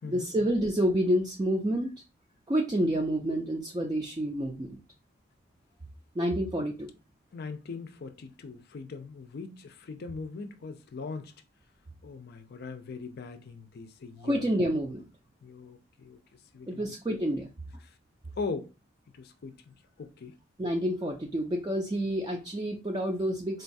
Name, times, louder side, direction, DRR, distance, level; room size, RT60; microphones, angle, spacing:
voice 1, 0.0-1.9 2.5-4.8 6.2-6.9 14.2-15.0 16.7-17.5 20.6-23.6, equal, 20° right, 0.4 m, -28 dB
voice 2, 7.3-11.3 12.0-14.7 15.4-16.2 16.5-16.9 17.8-18.0 18.4-18.7 19.1-20.4, left 4 dB, 50° left, 0.4 m, -40 dB
3.8 x 2.2 x 2.6 m
head